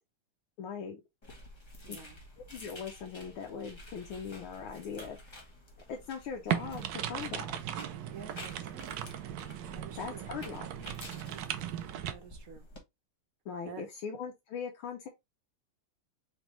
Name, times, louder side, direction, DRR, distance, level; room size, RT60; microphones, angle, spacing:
voice 1, 0.6-1.0 1.9-2.0 2.5-5.4 5.9-7.5 10.0-10.9 13.4-15.1, left 6 dB, 75° left, 1.5 m, -40 dB
sound 1, 1.2-12.8, left 1 dB, 25° left, 0.6 m, -51 dB
voice 2, 1.8-2.2 8.0-8.9 9.7-10.3 11.3-11.5 12.1-12.7 13.6-13.9, right 6 dB, 50° right, 1.2 m, -49 dB
sound 2, 6.5-12.1, right 11 dB, 70° right, 1.1 m, -37 dB
5.0 x 3.4 x 3.0 m
omnidirectional pair, 2.4 m